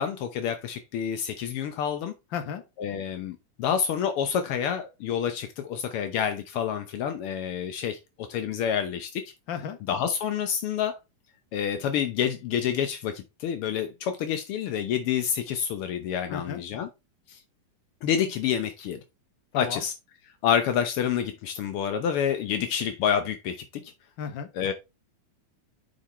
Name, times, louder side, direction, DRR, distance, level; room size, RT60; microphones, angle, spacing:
voice 1, 0.0-2.1 2.8-9.3 9.9-10.9 11.5-16.9 17.3-17.4 18.0-19.0 19.5-19.9 20.4-23.9 24.5-24.7, left 8 dB, 80° left, 1.2 m, -28 dB
voice 2, 2.3-2.6 9.5-9.8 16.3-16.6 19.5-19.8 24.2-24.5, left 7 dB, 55° left, 1.4 m, -33 dB
7.1 x 5.2 x 4.2 m
omnidirectional pair, 3.5 m